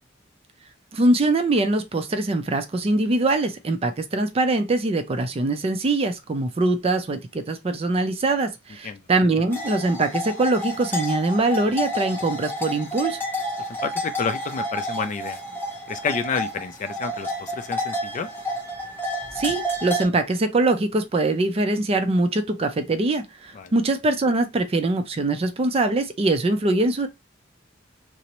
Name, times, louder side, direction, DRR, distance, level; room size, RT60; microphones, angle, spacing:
voice 1, 0.9-13.2 19.4-27.1, right 2 dB, 30° right, 0.4 m, -23 dB
sound 1, 9.5-20.1, equal, 10° left, 0.8 m, -30 dB
voice 2, 13.6-15.4 15.9-18.3 23.5-23.7, left 5 dB, 40° left, 0.3 m, -29 dB
2.5 x 2.0 x 2.9 m
head